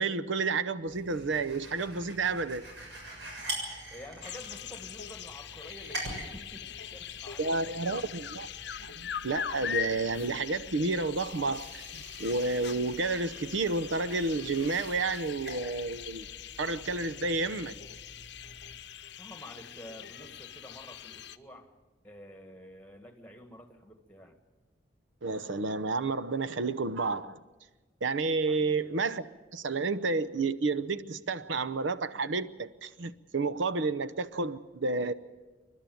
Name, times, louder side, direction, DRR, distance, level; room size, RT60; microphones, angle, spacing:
voice 1, 0.0-2.7 7.4-8.5 8.8-16.3 16.6-17.8 25.2-27.4 28.0-29.2 29.5-35.1, right 3 dB, 90° right, 0.8 m, -30 dB
sound 1, 0.9-18.8, right 1 dB, 75° right, 7.1 m, -45 dB
voice 2, 3.9-8.0 19.2-21.7 22.0-24.4 28.5-28.8, equal, 10° left, 1.8 m, -49 dB
sound 2, 4.2-21.4, left 9 dB, 65° left, 0.7 m, -42 dB
28.5 x 12.0 x 9.2 m
head